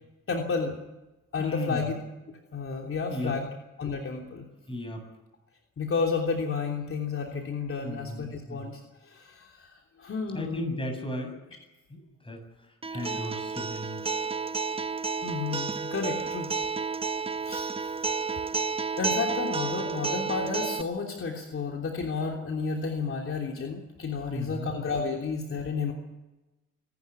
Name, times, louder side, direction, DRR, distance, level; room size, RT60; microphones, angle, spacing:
voice 1, 0.3-0.7 1.3-1.9 2.5-3.5 3.8-4.5 5.8-10.7 13.1-13.2 15.2-16.5 17.4-18.0 19.0-25.9, left 5 dB, 45° left, 1 dB, 3.3 m, -31 dB
voice 2, 1.4-1.9 3.1-3.3 4.7-5.0 7.8-8.7 10.3-11.4 11.9-12.4 12.9-14.1 24.3-24.7, left 1 dB, 15° left, 4 dB, 7.5 m, -35 dB
Acoustic guitar, 12.8-20.8, right 5 dB, 20° right, 0.7 m, -31 dB
25.5 x 12.0 x 9.8 m, 1.0 s
cardioid pair, 90°, 30 cm